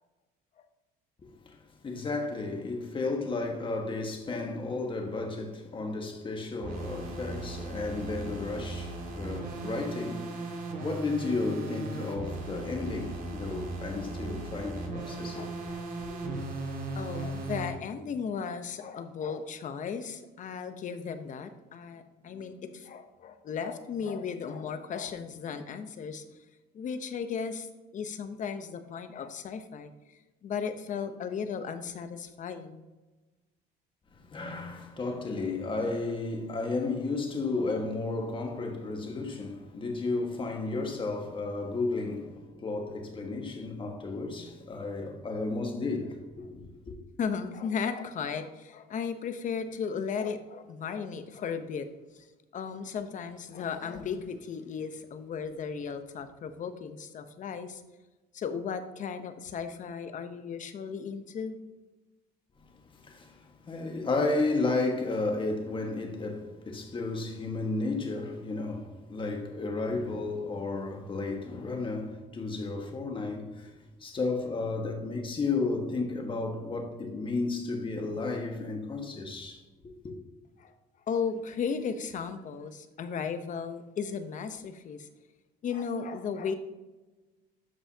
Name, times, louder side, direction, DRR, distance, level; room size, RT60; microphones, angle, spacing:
voice 1, 1.8-15.5 16.2-16.3 34.3-46.9 62.9-63.4 63.6-73.7 74.0-79.6 80.0-80.1, left 3 dB, 30° left, 1.6 m, -33 dB
sound 1, 6.6-17.7, right 2 dB, 55° right, 1.9 m, -37 dB
voice 2, 15.3-16.1 16.9-26.2 26.7-27.7 27.9-29.9 30.4-32.8 47.2-51.9 52.1-52.3 52.5-57.8 58.3-61.6 80.6-80.7 81.1-85.1 85.6-86.6, left 6 dB, 50° left, 0.8 m, -35 dB
12.5 x 5.5 x 2.8 m
cardioid pair, 110°, 17 cm